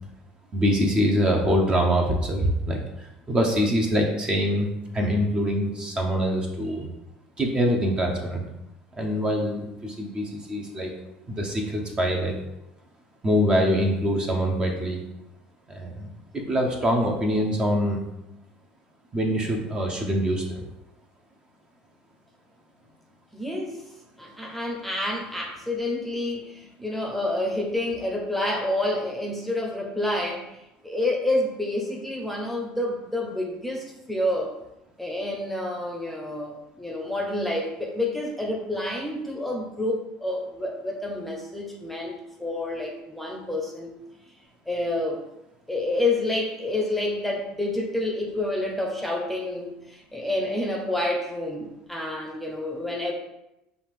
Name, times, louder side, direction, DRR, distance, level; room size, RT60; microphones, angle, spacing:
voice 1, 0.5-4.7 4.9-6.9 7.4-8.4 9.0-10.9 11.3-12.3 13.2-15.0 15.7-18.0 19.1-20.6, equal, 25° right, 1 dB, 0.9 m, -24 dB
voice 2, 23.3-23.8 24.2-30.5 30.8-34.5 35.0-43.9 44.7-45.2 45.7-53.1, left 1 dB, 5° left, 0 dB, 0.9 m, -28 dB
5.5 x 2.5 x 3.6 m, 0.89 s
hypercardioid pair, 80°, 3 cm